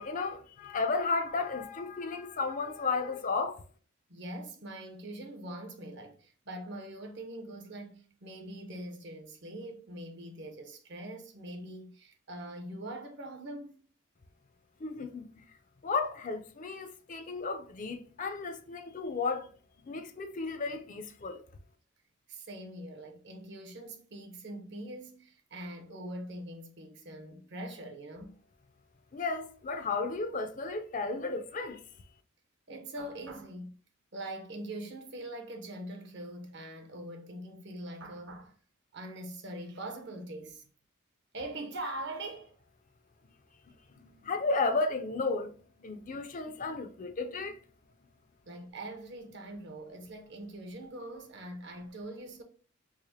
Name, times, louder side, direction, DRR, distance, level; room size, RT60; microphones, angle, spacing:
voice 1, 0.0-3.6 14.8-15.4 15.8-19.5 19.8-21.4 29.1-31.8 44.0-45.5 45.8-47.6, left 4 dB, 35° left, 0.5 m, -33 dB
voice 2, 4.1-13.8 22.3-28.4 32.7-33.8 34.1-38.6 38.9-40.6 41.3-42.6 48.5-52.4, right 1 dB, 55° right, 0.8 m, -43 dB
4.8 x 2.1 x 2.8 m
head